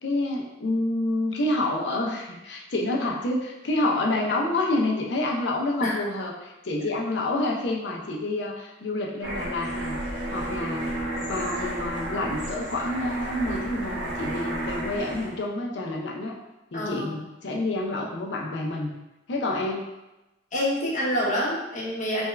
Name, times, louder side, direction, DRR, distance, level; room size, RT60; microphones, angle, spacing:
voice 1, 0.0-10.0 10.3-10.9 11.3-16.4 16.7-18.9 19.3-19.8, left 2 dB, 65° left, 0 dB, 0.5 m, -28 dB
sound 1, 9.2-15.4, right 1 dB, 75° right, 1.2 m, -32 dB
voice 2, 16.7-17.1 20.5-22.3, equal, 40° left, -6 dB, 0.9 m, -27 dB
3.4 x 2.3 x 3.1 m, 1.0 s
head